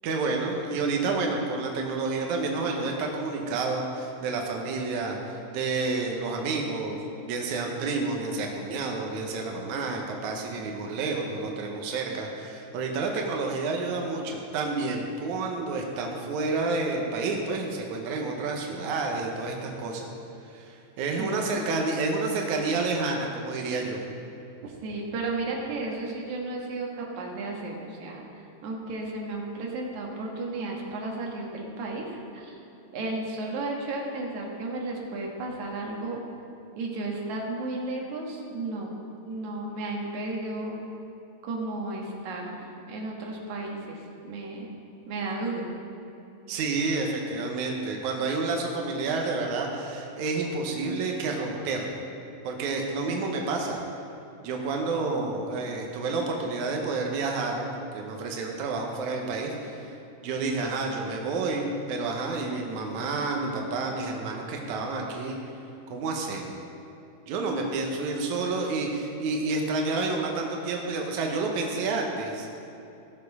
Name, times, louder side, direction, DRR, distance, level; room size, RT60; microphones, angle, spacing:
voice 1, 0.0-7.0 7.3-20.1 20.5-24.0 46.5-52.0 52.4-53.8 54.4-59.9 60.2-65.4 65.9-66.5 67.3-72.5, right 3 dB, 90° right, 1 dB, 1.7 m, -29 dB
voice 2, 24.6-28.2 28.6-32.6 32.9-36.2 36.8-38.9 39.2-40.8 41.4-42.6 42.9-44.7 45.1-45.7, right 2 dB, 60° right, -1 dB, 2.3 m, -33 dB
16.5 x 7.0 x 4.8 m, 2.9 s
omnidirectional pair, 4.8 m